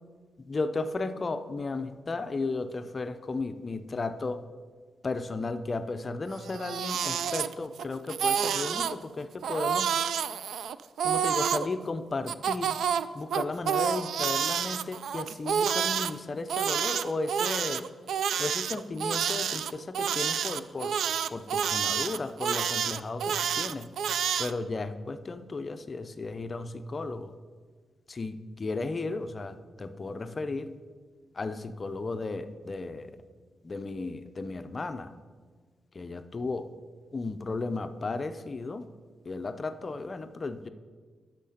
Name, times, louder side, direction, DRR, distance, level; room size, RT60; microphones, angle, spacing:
voice 1, 0.4-4.4 5.0-9.9 11.0-12.8 13.1-17.9 18.4-21.0 21.3-23.9 24.4-27.3 28.1-30.7 31.3-33.1 33.6-35.1 35.9-36.7 37.1-38.9 39.2-40.7, left 3 dB, 25° left, 10 dB, 0.5 m, -34 dB
Crying sobbing, 6.4-7.8 8.1-8.9 9.4-11.7 12.3-16.1 16.5-24.5, right 8 dB, 75° right, 0.3 m, -29 dB
10.0 x 6.5 x 5.7 m, 1.5 s
wide cardioid pair, 170°, 0 cm